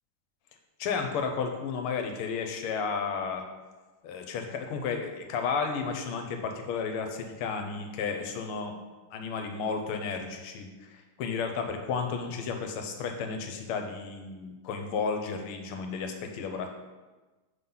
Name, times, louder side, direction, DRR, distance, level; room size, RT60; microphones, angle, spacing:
voice 1, 0.8-3.4 4.0-8.7 9.1-16.7, left 5 dB, 85° left, 5 dB, 1.6 m, -33 dB
6.2 x 3.8 x 5.5 m, 1.2 s
omnidirectional pair, 2.4 m